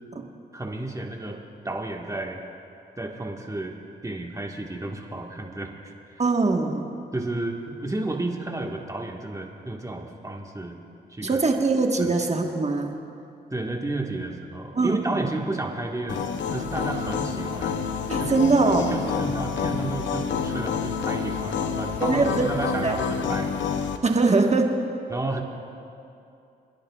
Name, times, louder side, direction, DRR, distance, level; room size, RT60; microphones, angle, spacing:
voice 1, 0.5-2.4 3.0-3.7 4.0-6.2 7.1-10.8 11.1-11.4 12.0-12.1 13.5-17.8 18.2-18.3 18.7-23.5 25.1-25.4, right 2 dB, 15° right, 1 dB, 1.6 m, -32 dB
voice 2, 6.2-6.9 11.2-13.0 14.7-15.2 18.1-19.0 22.0-22.5 22.8-22.9 23.3-23.4 24.0-24.8, right 3 dB, 35° right, 3 dB, 1.4 m, -22 dB
sound 1, 16.1-24.0, left 6 dB, 85° left, 0.7 m, -28 dB
27.0 x 10.5 x 2.4 m, 2.7 s
cardioid pair, 50°, 19 cm